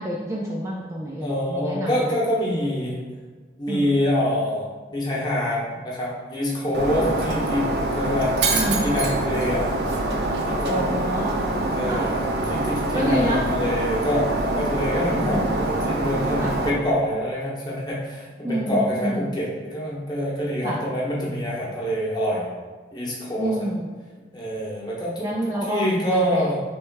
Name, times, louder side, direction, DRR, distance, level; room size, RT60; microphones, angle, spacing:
voice 1, 0.0-2.2 3.7-3.9 4.1-4.3 8.5-8.9 10.7-11.4 11.8-12.1 12.9-13.4 15.1-15.4 16.4-16.6 18.4-19.3 20.6-20.9 23.4-23.9 25.2-26.5, equal, 15° right, -4 dB, 0.3 m, -28 dB
voice 2, 1.2-3.0 3.6-8.3 8.7-9.7 10.0-11.1 11.7-22.5 22.9-23.7 24.3-25.3 25.7-26.6, equal, 25° left, -5 dB, 0.9 m, -26 dB
Shatter, 6.7-16.7, right 2 dB, 60° right, 0.6 m, -25 dB
3.3 x 3.0 x 4.6 m, 1.4 s
head